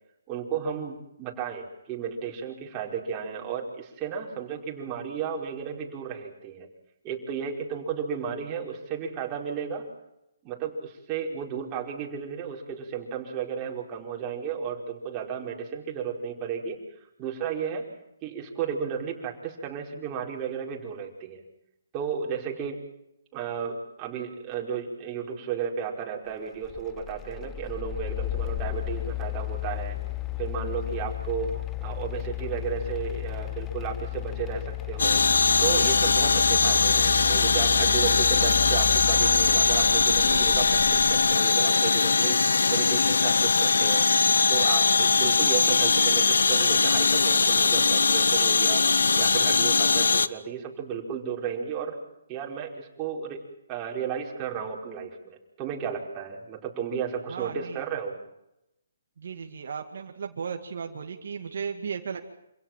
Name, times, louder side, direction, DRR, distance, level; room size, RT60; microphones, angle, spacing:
voice 1, 0.3-6.7 7.0-9.8 10.4-16.8 17.2-17.9 18.2-21.4 21.9-22.8 23.3-30.0 30.4-31.5 31.8-35.2 35.6-42.4 42.7-44.1 44.5-52.0 52.3-53.4 53.7-58.2, right 7 dB, 25° right, -1 dB, 5.0 m, -33 dB
sound 1, 26.6-41.4, left 16 dB, 15° left, 0.9 m, -34 dB
sound 2, 35.0-50.3, left 4 dB, 80° left, 1.0 m, -21 dB
voice 2, 57.3-57.8 59.2-62.2, right 6 dB, 65° right, 4 dB, 2.2 m, -35 dB
27.5 x 17.0 x 7.5 m, 0.84 s
hypercardioid pair, 150°, 0 cm